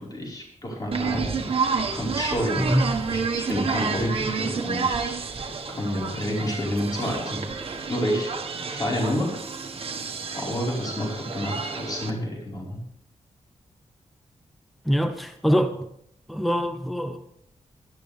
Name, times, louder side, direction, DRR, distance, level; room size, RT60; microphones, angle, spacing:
voice 1, 0.0-5.1 5.8-7.6 7.9-8.4 8.7-9.4 10.3-12.8, equal, 35° left, 4.7 m, -29 dB
sound 1, 0.9-12.1, right 5 dB, 55° right, 1.5 m, -30 dB
voice 2, 14.9-15.7 16.3-17.2, equal, ahead, 0.7 m, -23 dB
17.0 x 13.0 x 3.5 m
wide cardioid pair, 140°, 12 cm